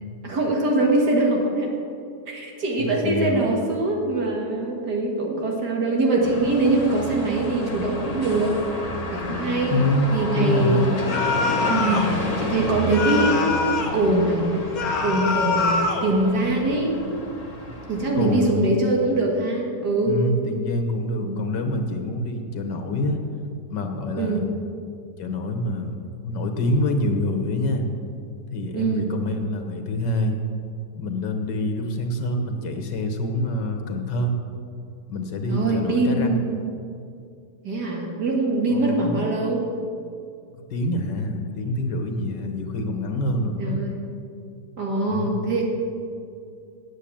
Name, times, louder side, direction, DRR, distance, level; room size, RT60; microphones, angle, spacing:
voice 1, 0.2-1.7 2.3-8.6 9.1-9.8 10.1-11.0 11.7-13.5 13.9-14.4 15.0-16.9 17.9-20.2 21.2-21.4 24.2-24.5 28.7-29.1 35.5-36.7 37.6-39.7 43.6-44.0 44.8-45.7, right 2 dB, 70° right, -1 dB, 2.3 m, -23 dB
voice 2, 2.8-3.5 9.7-11.0 18.1-18.7 20.1-23.2 23.7-24.4 25.2-25.9 26.2-27.8 28.5-30.4 31.0-34.3 35.1-36.4 38.7-39.2 40.5-43.8 45.1-45.3, left 1 dB, 85° left, 5 dB, 1.8 m, -26 dB
sound 1, 6.2-18.5, left 1 dB, 25° left, 1.1 m, -31 dB
sound 2, 11.1-12.1 12.9-14.0 14.7-16.1, left 4 dB, 55° left, 1.5 m, -24 dB
8.6 x 8.3 x 8.7 m, 2.4 s
omnidirectional pair, 1.8 m